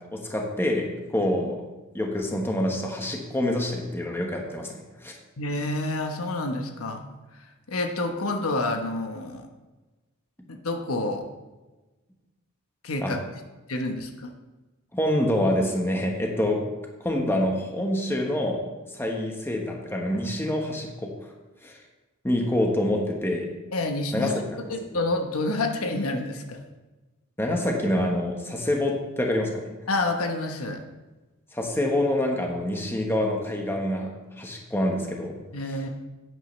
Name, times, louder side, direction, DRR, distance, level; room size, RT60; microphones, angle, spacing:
voice 1, 0.1-1.6 1.9-4.7 5.0-5.1 13.0-13.1 14.9-16.6 17.0-18.6 18.9-21.1 21.6-21.7 22.2-23.5 24.1-24.3 27.4-29.6 31.5-35.4, left 1 dB, 10° left, 1 dB, 1.2 m, -26 dB
voice 2, 5.4-7.1 7.7-9.5 10.5-11.3 12.8-13.2 13.7-14.3 23.7-24.3 24.7-26.6 29.9-30.8 35.5-35.9, left 2 dB, 85° left, 4 dB, 1.1 m, -28 dB
11.0 x 9.1 x 3.3 m, 1.2 s
head